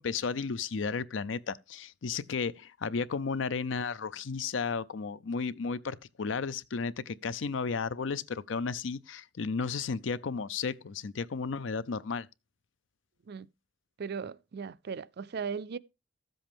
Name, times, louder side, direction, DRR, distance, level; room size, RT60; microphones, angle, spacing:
voice 1, 0.0-12.3, left 5 dB, 70° left, 0.5 m, -33 dB
voice 2, 14.0-15.8, right 6 dB, 55° right, 0.4 m, -37 dB
13.0 x 7.7 x 3.5 m
head